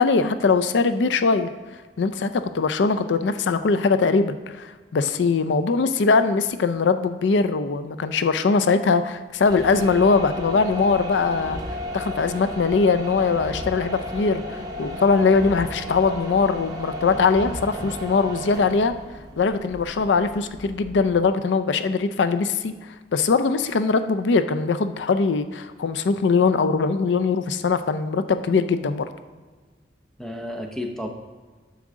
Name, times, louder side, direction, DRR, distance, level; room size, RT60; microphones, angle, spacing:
voice 1, 0.0-1.5 2.0-11.6 11.9-18.9 19.4-22.7 23.1-29.1, left 4 dB, 90° left, 11 dB, 0.4 m, -21 dB
sound 1, 9.3-21.2, left 1 dB, 20° right, 0.9 m, -34 dB
voice 2, 17.1-18.1 30.2-31.1, left 1 dB, 5° left, 2 dB, 0.8 m, -34 dB
9.8 x 7.3 x 3.7 m, 1.4 s
head